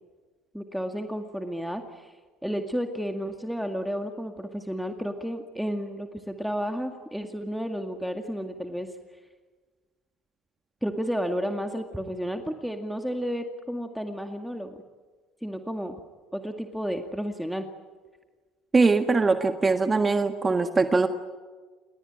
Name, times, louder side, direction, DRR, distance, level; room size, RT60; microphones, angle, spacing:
voice 1, 0.5-2.1 2.4-8.9 10.8-14.8 15.4-16.0 16.3-17.7, equal, ahead, 5 dB, 2.1 m, -32 dB
voice 2, 18.7-21.1, right 3 dB, 25° right, 7 dB, 1.6 m, -22 dB
29.0 x 19.0 x 9.1 m, 1.4 s
supercardioid pair, 80°, 0 cm